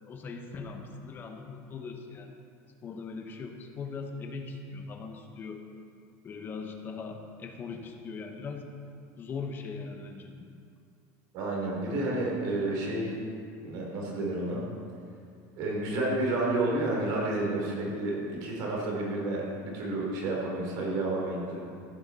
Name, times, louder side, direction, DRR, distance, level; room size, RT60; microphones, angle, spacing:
voice 1, 0.0-2.3 2.8-5.6 6.2-8.7 9.2-10.3, left 4 dB, 25° left, 4 dB, 1.0 m, -40 dB
voice 2, 11.3-13.2 13.6-14.7 15.6-21.6, right 2 dB, 50° right, -3 dB, 3.4 m, -30 dB
14.5 x 8.7 x 4.1 m, 2.4 s
cardioid pair, 165°, 8 cm